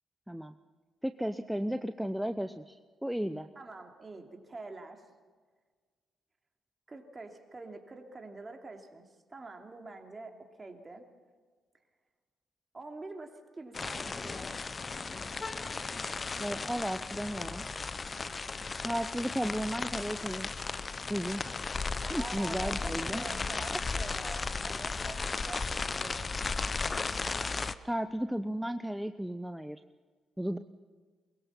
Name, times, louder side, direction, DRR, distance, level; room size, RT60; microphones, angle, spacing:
voice 1, 1.0-3.5 16.4-17.6 18.8-20.5 21.1-21.7 22.1-23.3 23.7-23.8 27.8-29.8 30.4-30.6, equal, 5° right, 9 dB, 0.8 m, -34 dB
voice 2, 3.5-5.0 6.9-11.1 12.7-14.6 18.1-18.7 22.0-26.3, right 3 dB, 30° right, 4 dB, 3.1 m, -46 dB
sound 1, 13.7-27.8, left 4 dB, 35° left, 0.9 m, -35 dB
23.0 x 21.5 x 5.7 m, 1.5 s
hypercardioid pair, 50°, 0 cm